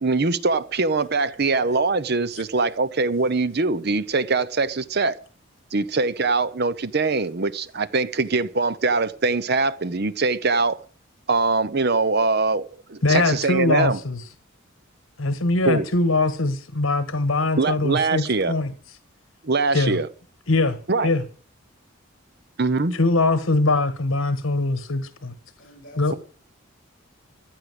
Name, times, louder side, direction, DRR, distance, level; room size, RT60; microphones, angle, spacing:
voice 1, 0.0-5.2 5.7-10.8 11.3-14.0 15.6-15.9 17.6-18.5 19.4-20.1 20.9-21.1 22.6-23.0 26.1-26.2, right 3 dB, 50° right, 0.8 m, -22 dB
voice 2, 13.0-14.2 15.2-18.7 19.7-20.0 20.5-20.8 21.0-21.2 22.9-25.3 26.0-26.1, left 2 dB, 75° left, 1.4 m, -22 dB
voice 3, 25.6-26.2, left 1 dB, 40° left, 5.6 m, -46 dB
15.0 x 10.5 x 7.9 m
head